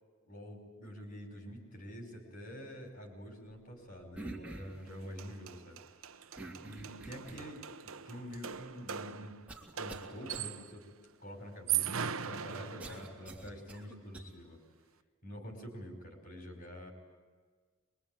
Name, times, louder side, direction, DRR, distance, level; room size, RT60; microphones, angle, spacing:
voice 1, 0.3-6.1 6.6-7.6 8.0-9.4 9.7-10.9 11.2-14.6 15.2-16.9, equal, 45° left, 3 dB, 5.0 m, -47 dB
sound 1, 4.1-4.9 6.4-7.6 8.3-8.4 9.5-10.1 10.3-10.5 12.8-14.2, right 2 dB, 5° right, 3.0 m, -46 dB
sound 2, 4.9-5.0 5.2-10.8 11.5-13.3, right 9 dB, 80° right, 1.0 m, -39 dB
24.0 x 24.0 x 9.1 m, 1.5 s
head